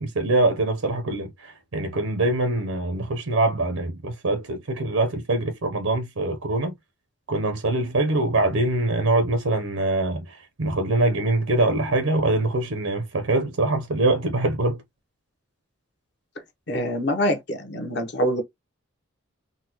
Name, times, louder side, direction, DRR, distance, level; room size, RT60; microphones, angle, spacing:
voice 1, 0.0-6.7 7.3-14.8, right 2 dB, 90° right, 0.7 m, -23 dB
voice 2, 16.7-18.4, equal, 55° left, 0.8 m, -25 dB
3.9 x 2.1 x 2.8 m
head